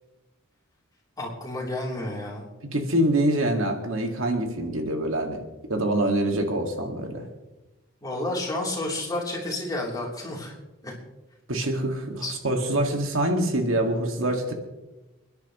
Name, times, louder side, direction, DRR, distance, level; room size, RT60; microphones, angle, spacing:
voice 1, 1.2-2.5 8.0-10.5 10.8-10.9 12.2-12.3, left 1 dB, 20° left, -3 dB, 3.3 m, -30 dB
voice 2, 2.7-7.2 11.5-14.5, right 1 dB, 70° right, 3 dB, 1.9 m, -25 dB
29.5 x 10.5 x 3.1 m, 1.0 s
head